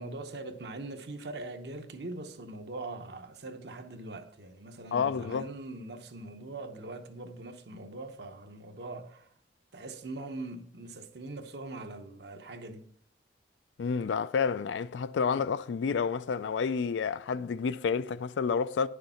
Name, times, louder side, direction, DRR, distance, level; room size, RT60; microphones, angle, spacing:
voice 1, 0.0-9.3 9.7-12.9, right 2 dB, 65° right, 0.9 m, -42 dB
voice 2, 4.9-5.5 13.8-18.9, left 5 dB, 80° left, 0.4 m, -29 dB
9.9 x 6.6 x 4.2 m
head